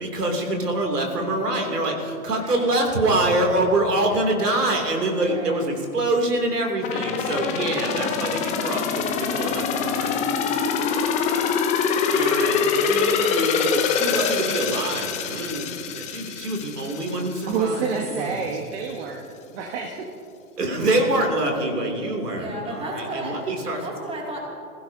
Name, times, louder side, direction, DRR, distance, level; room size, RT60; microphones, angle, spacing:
voice 1, 0.0-10.2 12.1-18.4 20.6-23.9, right 1 dB, 85° right, 1 dB, 2.9 m, -25 dB
voice 2, 2.3-2.7 5.2-5.6 22.3-23.4 23.8-24.4, right 1 dB, 15° right, -2 dB, 2.6 m, -34 dB
sound 1, 6.8-17.6 18.0-18.1, left 6 dB, 15° left, 0.6 m, -24 dB
voice 3, 17.4-20.1, right 5 dB, 45° right, 2 dB, 1.4 m, -28 dB
21.5 x 15.5 x 2.8 m, 2.7 s
hypercardioid pair, 125°, 46 cm